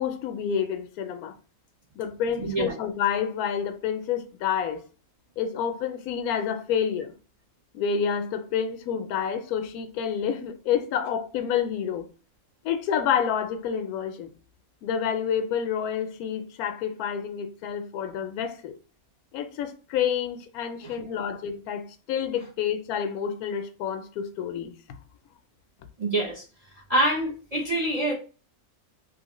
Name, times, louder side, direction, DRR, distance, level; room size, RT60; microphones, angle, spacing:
voice 1, 0.0-1.3 2.0-4.8 5.4-7.1 7.7-12.1 12.6-14.3 14.8-18.7 19.3-24.7, left 8 dB, 85° left, 1.1 m, -28 dB
voice 2, 2.4-2.7 20.8-21.0 26.0-26.4 26.9-28.1, right 1 dB, 45° right, 0.5 m, -25 dB
3.1 x 2.7 x 2.9 m
omnidirectional pair, 1.5 m